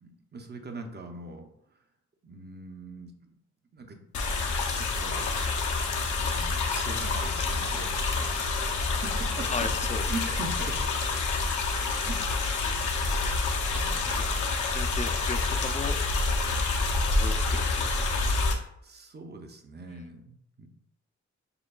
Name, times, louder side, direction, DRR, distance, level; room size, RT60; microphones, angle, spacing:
voice 1, 0.0-1.8 2.2-3.1 3.7-4.0 4.7-5.3 6.2-9.5 10.0-10.8 12.1-12.2 13.6-14.6 18.8-20.7, right 2 dB, 35° right, 4 dB, 0.6 m, -41 dB
sound 1, 4.1-18.5, left 3 dB, 80° left, 0.7 m, -28 dB
voice 2, 9.5-10.0 14.2-14.3 14.7-15.9 17.1-18.0, left 4 dB, 25° left, 7 dB, 0.4 m, -35 dB
6.7 x 2.3 x 2.2 m, 0.74 s
cardioid pair, 80°, 30 cm